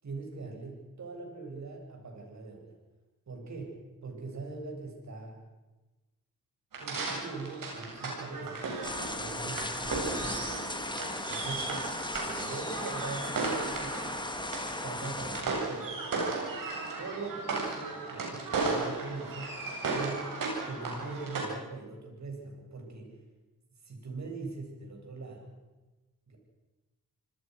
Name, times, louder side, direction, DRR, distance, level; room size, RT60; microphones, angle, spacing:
voice 1, 0.0-2.7 3.3-5.4 6.8-8.6 9.2-10.6 11.3-11.8 12.2-14.1 14.8-16.0 17.0-19.5 19.9-20.4 20.6-23.2 23.8-25.6 26.3-26.4, right 3 dB, 55° right, 2 dB, 7.7 m, -42 dB
sound 1, 6.7-21.4, right 3 dB, 70° right, 7.8 m, -35 dB
sound 2, 8.8-15.4, left 2 dB, 15° left, 2.4 m, -36 dB
28.5 x 20.5 x 6.5 m, 1.2 s
cardioid pair, 85°, 34 cm